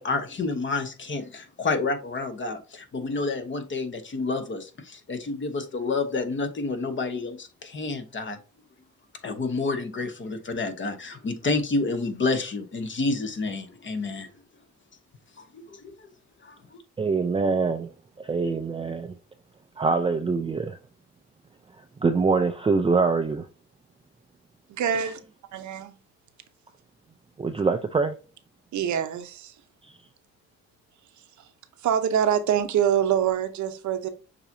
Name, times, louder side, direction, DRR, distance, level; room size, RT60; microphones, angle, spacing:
voice 1, 0.0-8.4 9.2-14.3 15.4-16.1 16.4-16.8, left 3 dB, 40° left, 1.1 m, -29 dB
voice 2, 17.0-17.9 18.2-19.1 19.8-20.8 22.0-23.5 27.4-28.2, right 4 dB, 20° right, 0.4 m, -24 dB
voice 3, 24.7-25.2 25.5-25.9 28.7-29.5 31.4-31.5 31.8-34.1, right 9 dB, 70° right, 0.8 m, -25 dB
6.7 x 3.0 x 2.7 m
cardioid pair, 90°, 30 cm